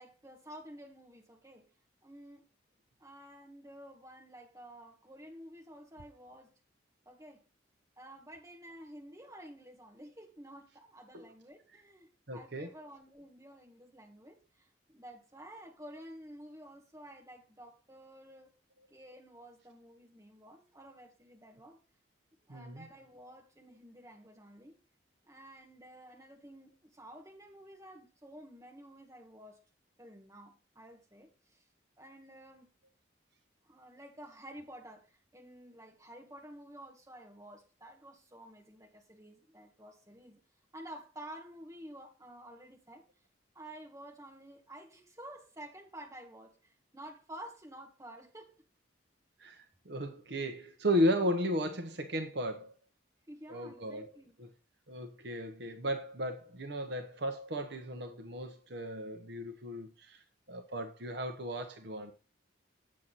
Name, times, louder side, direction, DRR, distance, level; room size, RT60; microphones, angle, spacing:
voice 1, 0.0-1.7 2.0-2.4 3.0-6.5 7.1-7.4 8.0-18.6 18.9-21.8 22.4-24.8 25.3-29.6 30.0-31.6 32.0-32.7 33.6-40.4 40.7-43.0 43.5-48.6 53.3-54.3, right 1 dB, 15° right, 2.1 m, -51 dB
voice 2, 12.3-12.7 22.5-22.8 49.4-52.7 53.5-54.1 54.4-54.5 54.9-62.1, equal, 60° right, 1.1 m, -35 dB
8.4 x 7.6 x 4.1 m
head